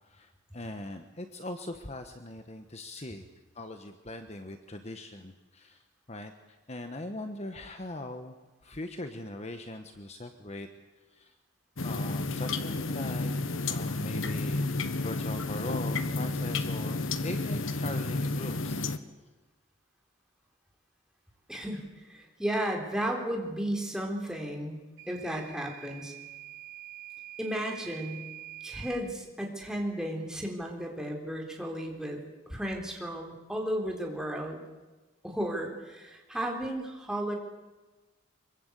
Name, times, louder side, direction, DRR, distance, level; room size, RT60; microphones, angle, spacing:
voice 1, 0.0-3.2 3.5-5.8 6.1-8.4 8.6-10.7 11.1-11.3 11.8-13.4 13.6-14.7 15.0-18.8, left 1 dB, 35° left, 7 dB, 1.3 m, -40 dB
sound 1, 11.8-19.0, left 3 dB, 75° left, 1.3 m, -31 dB
voice 2, 21.5-24.8 25.1-26.1 27.4-28.2 28.6-32.2 32.5-34.6 35.2-37.3, right 1 dB, 5° right, 1 dB, 3.8 m, -34 dB
Microwave oven / Alarm, 25.0-29.1, right 15 dB, 65° right, 5.7 m, -46 dB
24.5 x 23.0 x 8.3 m, 1.2 s
head